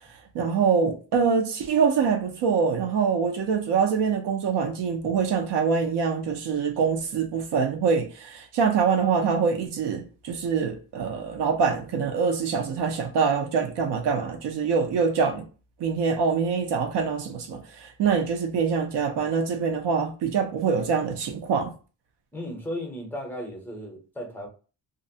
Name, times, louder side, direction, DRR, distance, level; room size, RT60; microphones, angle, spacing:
voice 1, 0.3-15.4 15.8-21.7, right 5 dB, 70° right, 0.6 m, -24 dB
voice 2, 22.3-24.5, equal, 5° left, 0.5 m, -35 dB
2.5 x 2.0 x 2.6 m
wide cardioid pair, 180°, 43 cm